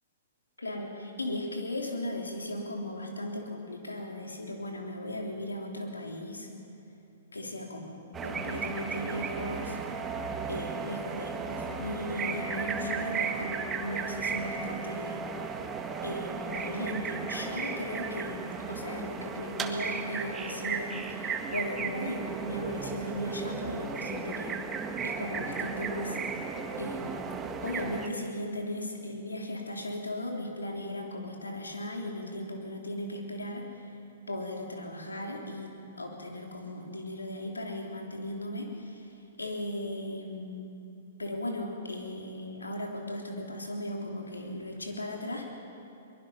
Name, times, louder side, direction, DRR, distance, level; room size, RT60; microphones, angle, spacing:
voice 1, 0.6-6.5 7.3-9.8 10.5-15.3 16.0-24.6 25.0-26.2 26.8-27.3 27.6-33.9 34.3-40.7 41.2-45.6, left 1 dB, 90° left, 1 dB, 3.4 m, -37 dB
sound 1, 8.1-28.1, right 5 dB, 20° right, 1.7 m, -35 dB
23.0 x 21.5 x 5.7 m, 2.8 s
figure-of-eight pair, 115°, 0 cm